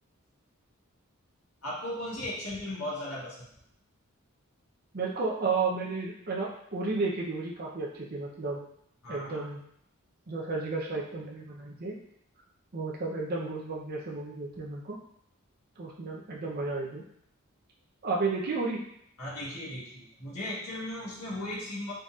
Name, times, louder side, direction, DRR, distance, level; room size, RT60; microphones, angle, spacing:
voice 1, 1.6-3.5 9.0-9.5 19.2-21.9, left 1 dB, 80° left, -7 dB, 1.6 m, -37 dB
voice 2, 4.9-8.6 9.1-9.6 10.3-12.0 12.7-15.0 15.8-17.0 18.0-18.8, right 3 dB, 45° right, -3 dB, 0.6 m, -32 dB
3.9 x 3.9 x 2.4 m, 0.71 s
head